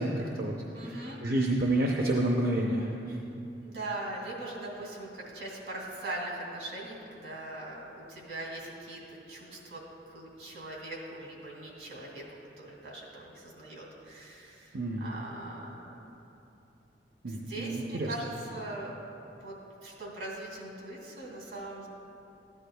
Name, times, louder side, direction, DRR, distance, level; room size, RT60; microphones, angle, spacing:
voice 1, 0.0-0.6 0.9-3.2 14.7-15.1 17.2-18.1, right 1 dB, 60° right, -1 dB, 0.6 m, -29 dB
voice 2, 0.7-1.2 3.6-12.3 12.6-15.8 17.3-18.9 19.4-21.9, right 2 dB, 85° right, -2 dB, 2.3 m, -41 dB
14.0 x 10.0 x 2.3 m, 2.8 s
head